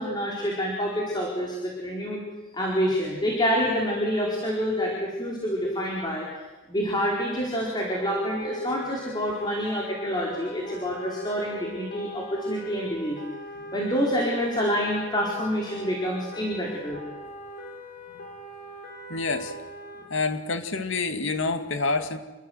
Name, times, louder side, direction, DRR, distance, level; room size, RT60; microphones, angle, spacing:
voice 1, 0.0-2.2 2.5-6.3 6.7-13.2 13.7-17.0, equal, 20° left, -2 dB, 4.5 m, -27 dB
sound 1, 7.5-20.0, left 1 dB, 45° left, 6.8 m, -41 dB
voice 2, 19.1-19.5 20.1-22.2, left 3 dB, 75° left, 7 dB, 2.5 m, -27 dB
28.0 x 23.5 x 8.1 m, 1.2 s
head